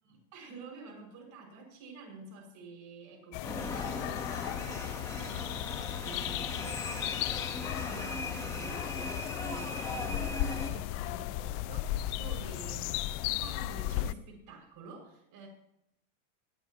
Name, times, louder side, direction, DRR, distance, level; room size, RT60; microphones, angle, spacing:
voice 1, 0.3-15.5, right 4 dB, 50° right, 2 dB, 6.1 m, -49 dB
sound 1, 3.3-14.1, left 15 dB, 45° left, 0.6 m, -35 dB
sound 2, 3.4-10.7, left 1 dB, 10° left, 2.5 m, -39 dB
19.5 x 13.5 x 3.0 m, 0.81 s
hypercardioid pair, 100°, 42 cm